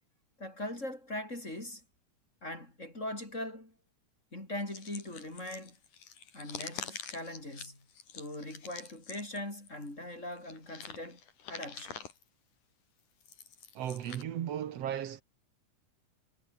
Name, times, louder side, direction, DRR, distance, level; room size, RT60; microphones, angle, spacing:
voice 1, 0.4-1.8 2.4-3.7 4.3-5.8 6.3-7.9 8.1-11.2 11.5-12.1, left 1 dB, 20° left, 5.7 m, -41 dB
sound 1, 4.7-9.9 10.3-12.2 13.0-14.2, left 7 dB, 80° left, 4.8 m, -47 dB
voice 2, 13.8-15.2, right 10 dB, 60° right, 2.1 m, -36 dB
omnidirectional pair, 3.6 m